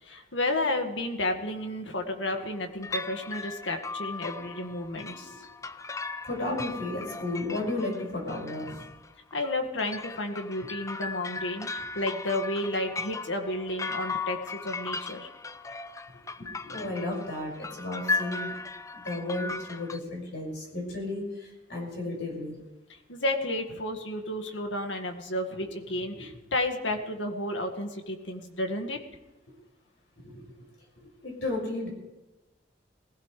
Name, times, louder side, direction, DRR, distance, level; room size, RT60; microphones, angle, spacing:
voice 1, 0.0-5.3 9.3-15.3 22.9-29.0, left 1 dB, 90° left, 4 dB, 2.0 m, -32 dB
sound 1, 2.3-2.6 2.8-20.0, left 4 dB, 15° left, 0.4 m, -37 dB
voice 2, 6.2-8.8 16.4-18.5 18.9-22.6 26.1-26.2 29.5-29.6 30.2-30.4 31.0-31.9, left 2 dB, 65° left, -1 dB, 6.2 m, -34 dB
21.0 x 16.0 x 3.4 m, 1.1 s
head